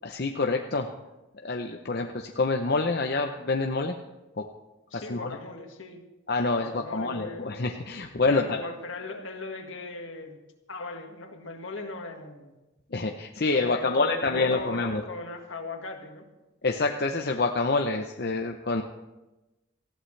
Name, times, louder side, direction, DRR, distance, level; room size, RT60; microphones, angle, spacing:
voice 1, 0.0-0.9 1.4-3.9 4.4-4.5 4.9-5.4 6.3-8.6 12.9-15.0 16.6-18.8, left 3 dB, 50° left, 3 dB, 0.7 m, -27 dB
voice 2, 4.9-6.0 6.6-7.5 8.2-10.4 10.7-12.5 13.4-16.3, left 3 dB, 75° left, 4 dB, 1.8 m, -39 dB
19.0 x 14.5 x 3.3 m, 1.0 s
head